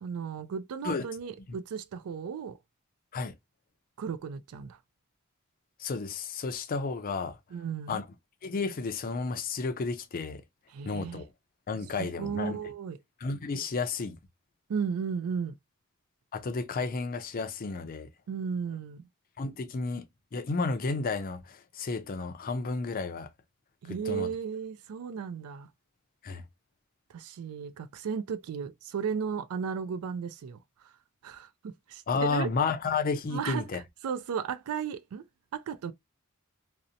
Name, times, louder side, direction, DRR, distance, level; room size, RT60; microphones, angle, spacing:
voice 1, 0.0-2.6 4.0-4.8 7.5-8.0 10.7-11.2 12.0-13.0 14.7-15.6 18.3-19.1 23.8-25.7 27.1-30.6 31.2-32.5 33.3-35.2 35.5-35.9, right 6 dB, 85° right, 0.4 m, -35 dB
voice 2, 5.8-7.4 7.9-8.0 8.4-10.4 10.8-11.2 11.7-12.6 13.2-14.2 16.3-18.1 19.4-20.0 20.3-23.3 23.9-24.3 26.2-26.4 32.1-33.8, left 4 dB, 40° left, 0.4 m, -32 dB
2.7 x 2.0 x 2.4 m
head